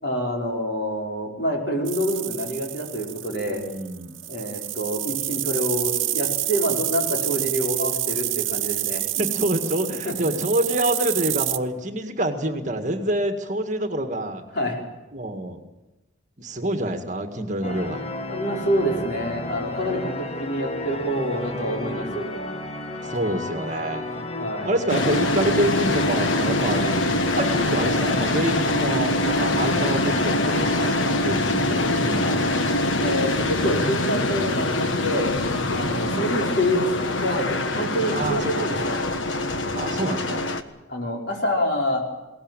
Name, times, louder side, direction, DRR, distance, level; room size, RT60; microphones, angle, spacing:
voice 1, 0.0-3.7 4.3-9.0 10.0-10.1 14.5-14.8 18.3-22.3 23.6-23.7 24.4-24.7 29.4-29.5 32.2-32.4 32.9-35.4 35.7-39.0 40.9-42.0, equal, 55° left, 0 dB, 5.1 m, -27 dB
sound 1, 1.8-11.6, right 15 dB, 85° right, 0.9 m, -28 dB
voice 2, 3.5-4.1 9.2-14.4 15.1-15.6 16.4-18.1 23.0-24.0 24.6-32.4 35.9-36.3 38.1-38.7 39.7-40.5, right 1 dB, 40° right, 6 dB, 1.9 m, -27 dB
sound 2, 17.6-32.0 32.3-33.5 34.1-34.2 34.5-34.6 35.4-36.5, left 1 dB, 30° left, 1.6 m, -33 dB
sound 3, 24.9-40.6, left 2 dB, 85° left, 1.4 m, -24 dB
21.5 x 18.0 x 9.1 m, 1.1 s
head